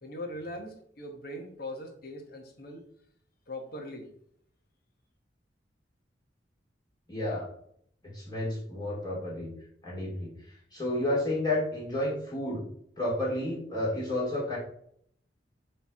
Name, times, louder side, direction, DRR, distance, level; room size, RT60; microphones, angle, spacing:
voice 1, 0.0-2.8 3.5-4.1, left 1 dB, 55° left, 4 dB, 1.3 m, -40 dB
voice 2, 7.1-7.5 8.0-9.5 9.8-10.3 10.7-12.6 13.0-14.6, left 1 dB, 25° left, -5 dB, 2.9 m, -31 dB
8.1 x 3.4 x 4.4 m, 0.67 s
head